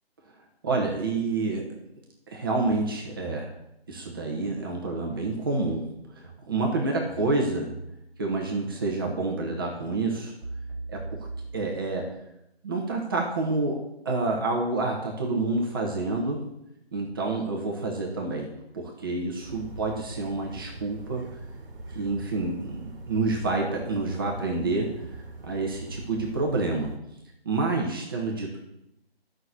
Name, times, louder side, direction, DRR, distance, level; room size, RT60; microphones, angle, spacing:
voice 1, 0.6-1.6 2.3-3.5 3.9-5.8 6.1-7.7 8.2-10.3 10.9-11.0 11.5-12.0 12.6-16.4 16.9-21.2 21.9-24.9 25.4-26.9 27.4-28.6, right 3 dB, 20° right, -1 dB, 1.3 m, -28 dB
sound 1, 2.6-4.8 5.1-5.9 6.2-9.2 9.6-12.0, right 2 dB, 45° right, 2.7 m, -43 dB
sound 2, 19.4-27.0, right 2 dB, 60° right, 1.7 m, -42 dB
10.0 x 6.3 x 8.1 m, 0.85 s
figure-of-eight pair, 160°, 32 cm